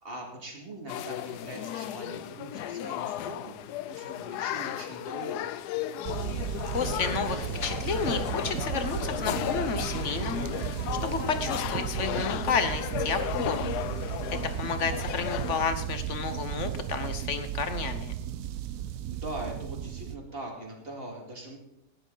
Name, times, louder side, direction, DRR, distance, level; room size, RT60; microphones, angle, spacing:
voice 1, 0.0-5.6 14.3-14.7 19.1-21.6, right 1 dB, 35° right, 0 dB, 2.5 m, -41 dB
sound 1, 0.9-15.7, left 12 dB, 80° left, 1.1 m, -35 dB
sound 2, 6.0-20.2, right 11 dB, 65° right, 0.9 m, -34 dB
voice 2, 6.7-10.8 11.0-13.7 14.6-18.1, left 5 dB, 50° left, 9 dB, 1.2 m, -31 dB
14.5 x 10.0 x 3.9 m, 0.86 s
omnidirectional pair, 1.7 m